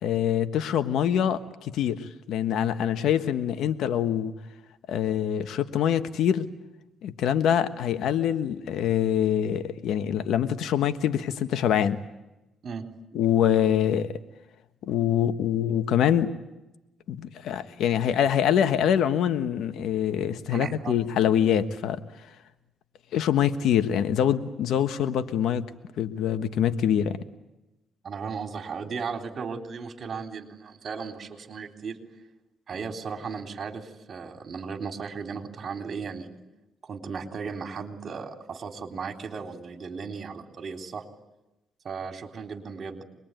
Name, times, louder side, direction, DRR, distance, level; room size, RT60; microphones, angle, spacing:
voice 1, 0.0-4.3 4.9-6.5 7.0-12.0 13.1-14.2 14.8-16.3 17.1-22.0 23.1-25.7 26.0-27.2, left 9 dB, 80° left, 10 dB, 1.4 m, -24 dB
voice 2, 20.5-21.0 28.0-32.0 32.7-36.3 36.8-41.1 41.8-43.0, right 5 dB, 50° right, 4 dB, 3.6 m, -36 dB
26.0 x 21.5 x 9.2 m, 0.97 s
cardioid pair, 90°, 0 cm